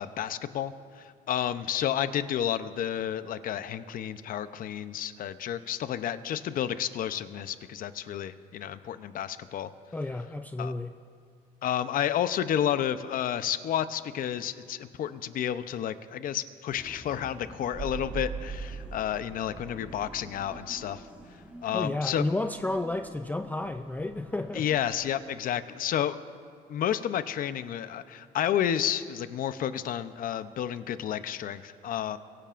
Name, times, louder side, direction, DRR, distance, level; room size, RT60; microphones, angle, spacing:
voice 1, 0.0-9.7 10.6-10.7 11.6-21.0 21.6-22.2 24.5-26.2 26.7-32.2, left 10 dB, 55° left, 12 dB, 0.7 m, -31 dB
voice 2, 9.9-11.0 21.7-24.7, left 2 dB, 10° left, 7 dB, 0.4 m, -31 dB
sound 1, 16.7-25.1, right 1 dB, 10° right, 1.6 m, -50 dB
sound 2, 17.7-21.5 21.7-21.8, right 6 dB, 45° right, 1.7 m, -40 dB
24.0 x 16.0 x 2.5 m, 2.3 s
cardioid pair, 110°, 17 cm